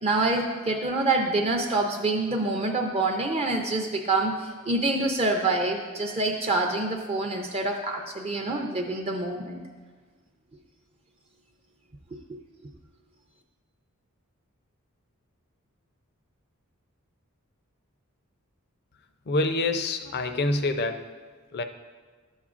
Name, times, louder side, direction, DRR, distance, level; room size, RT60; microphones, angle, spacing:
voice 1, 0.0-9.6 12.1-12.4, right 2 dB, 30° right, 2 dB, 0.5 m, -26 dB
voice 2, 19.3-21.0 21.5-21.6, left 2 dB, 50° left, 8 dB, 0.5 m, -26 dB
11.5 x 7.2 x 2.5 m, 1.5 s
head